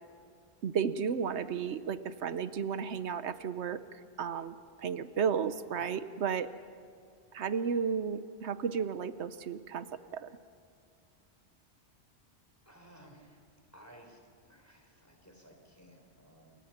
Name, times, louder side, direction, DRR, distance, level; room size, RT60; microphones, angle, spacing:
voice 1, 0.6-6.5 7.3-9.9 10.1-10.3, right 7 dB, 85° right, 12 dB, 1.1 m, -33 dB
voice 2, 12.6-13.4 13.7-16.6, equal, 15° left, 2 dB, 4.3 m, -57 dB
29.0 x 24.5 x 5.9 m, 2.3 s
omnidirectional pair, 1.1 m